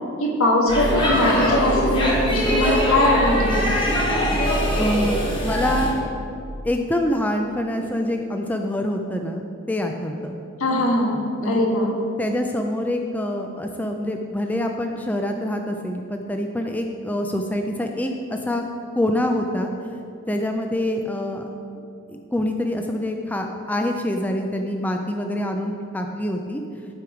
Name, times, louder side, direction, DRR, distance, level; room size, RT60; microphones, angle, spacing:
voice 1, 0.2-3.8 10.6-11.2 11.4-12.0, left 1 dB, 90° left, -1 dB, 1.6 m, -21 dB
Speech / Shout / Subway metro underground, 0.7-5.9, equal, 25° left, 1.2 m, -22 dB
voice 2, 4.8-6.1 6.6-10.4 11.4-11.6 12.2-18.6 18.9-19.7 20.3-21.4 22.1-26.6, left 1 dB, 10° left, 3 dB, 0.3 m, -25 dB
12.0 x 4.7 x 4.9 m, 2.5 s
head